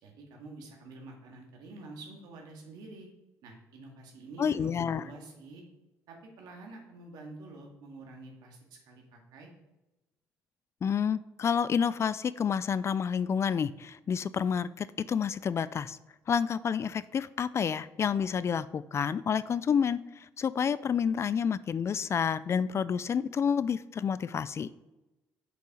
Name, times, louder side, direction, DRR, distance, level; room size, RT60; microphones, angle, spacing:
voice 1, 0.0-3.1 3.4-5.6 6.1-9.5, right 3 dB, 75° right, 1 dB, 1.9 m, -48 dB
voice 2, 4.4-5.1 10.8-16.0 16.3-24.7, left 7 dB, 40° left, 17 dB, 0.4 m, -29 dB
6.4 x 5.4 x 4.9 m, 1.0 s
supercardioid pair, 70°, 7 cm